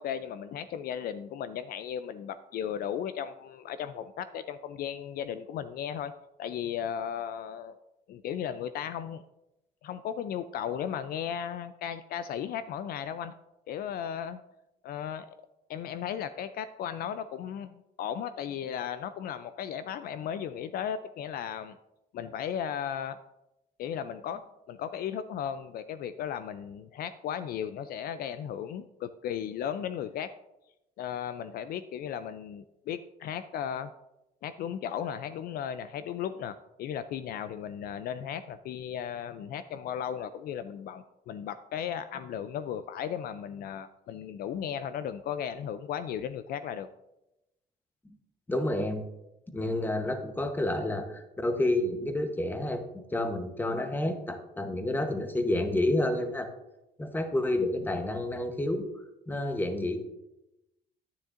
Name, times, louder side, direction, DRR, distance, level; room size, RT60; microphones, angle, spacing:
voice 1, 0.0-6.1 6.4-7.8 8.1-9.2 9.8-13.4 13.7-14.4 14.8-15.3 15.7-21.8 22.1-23.2 23.8-30.3 31.0-33.9 34.4-46.9, left 9 dB, 65° left, 12 dB, 0.4 m, -36 dB
voice 2, 48.5-49.0 49.5-52.8 53.1-56.5 57.0-58.9 59.3-60.0, left 1 dB, 10° left, 7 dB, 0.9 m, -29 dB
9.9 x 9.2 x 2.5 m, 0.92 s
cardioid pair, 110°, 17 cm